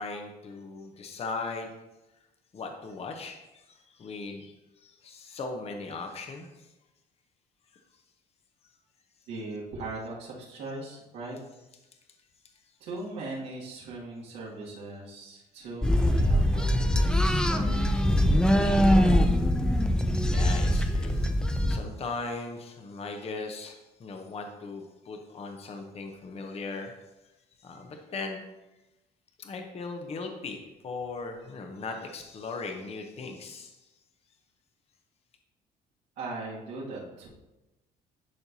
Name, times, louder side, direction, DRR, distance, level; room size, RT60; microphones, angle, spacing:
voice 1, 0.0-1.7 2.5-4.5 4.8-6.7 20.3-26.9 27.6-28.4 29.4-33.8, left 3 dB, 35° left, 4 dB, 0.8 m, -38 dB
voice 2, 9.3-11.4 12.8-19.1 36.2-37.3, right 2 dB, 90° right, -7 dB, 2.2 m, -39 dB
sound 1, 15.8-21.8, equal, 5° left, 0.4 m, -23 dB
10.5 x 4.4 x 2.8 m, 1.0 s
cardioid pair, 110°, 17 cm